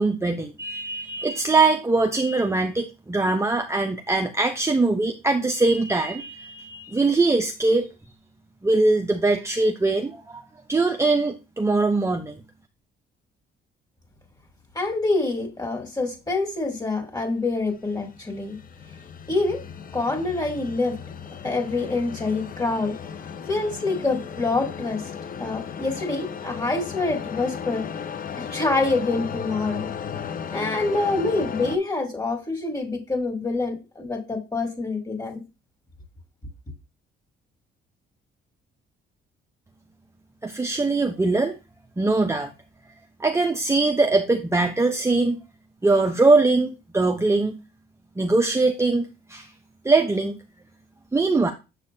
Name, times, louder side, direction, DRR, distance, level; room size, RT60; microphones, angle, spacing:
voice 1, 0.0-7.9 8.6-10.4 10.7-12.4 40.4-41.5 42.0-42.5 43.2-45.4 45.8-47.6 48.2-49.5 49.8-50.4 51.1-51.5, right 3 dB, 15° right, 0.7 m, -22 dB
voice 2, 14.7-18.6 19.3-19.6 19.9-21.0 21.4-22.9 23.5-25.0 25.4-27.9 28.4-29.9 30.5-35.4, left 3 dB, 20° left, 2.9 m, -26 dB
sound 1, 17.7-31.8, left 7 dB, 45° left, 0.7 m, -35 dB
7.6 x 6.6 x 2.7 m
cardioid pair, 90°, 20 cm